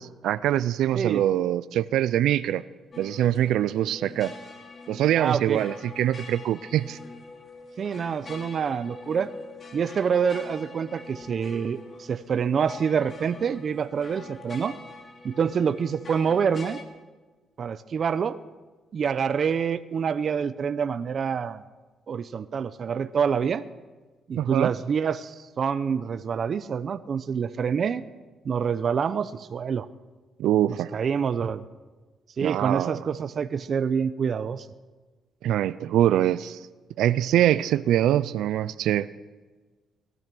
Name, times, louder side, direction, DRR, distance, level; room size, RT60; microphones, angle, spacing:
voice 1, 0.0-2.6 3.0-4.3 4.9-7.0 24.4-24.7 30.4-30.9 32.4-33.0 35.4-36.6 37.0-39.1, right 12 dB, 85° right, 16 dB, 0.4 m, -24 dB
sound 1, 2.9-16.8, left 3 dB, 40° left, 2.9 m, -44 dB
voice 2, 5.2-5.6 7.8-9.3 9.7-14.8 15.2-16.8 17.6-18.4 18.9-21.6 22.1-23.6 24.3-28.0 28.4-29.9 30.7-31.6 32.4-34.7, right 6 dB, 50° right, 12 dB, 0.6 m, -26 dB
19.5 x 12.5 x 6.1 m, 1.3 s
cardioid pair, 90°, 0 cm